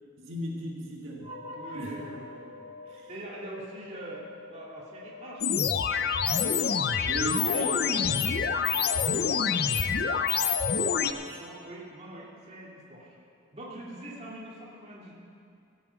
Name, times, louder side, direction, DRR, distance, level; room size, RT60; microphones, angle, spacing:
voice 1, 0.2-1.3 1.7-1.9 2.9-3.1 7.0-8.1 9.1-9.3 10.9-11.0 11.3-11.4, right 1 dB, 75° right, -2 dB, 1.8 m, -36 dB
sound 1, 1.2-11.7, left 1 dB, 90° left, 2.0 m, -47 dB
voice 2, 1.5-5.6 7.5-10.0 11.0-13.2 13.5-15.1, equal, 30° right, -5 dB, 2.4 m, -44 dB
sound 2, 5.4-11.1, left 7 dB, 50° left, 0.5 m, -26 dB
16.0 x 7.2 x 8.2 m, 2.5 s
head